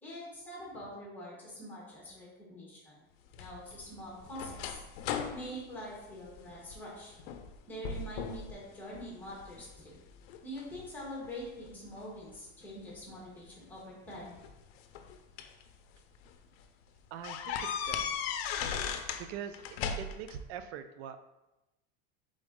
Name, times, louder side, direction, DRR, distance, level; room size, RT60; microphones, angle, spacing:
voice 1, 0.0-2.9 3.4-4.8 5.3-7.2 7.7-9.9 10.4-14.4, equal, 5° left, -5 dB, 1.1 m, -44 dB
sound 1, 3.3-6.8 7.2-7.5 7.8-8.5 8.9-9.7 10.3-11.7 12.9-13.0 14.2-15.6 16.1-16.3 16.6-16.7 17.2-19.3 19.5-20.4, left 7 dB, 80° left, 0.5 m, -37 dB
voice 2, 17.1-18.3 19.2-21.2, right 8 dB, 90° right, 10 dB, 0.5 m, -43 dB
3.9 x 3.8 x 3.6 m, 0.98 s
cardioid pair, 175°, 31 cm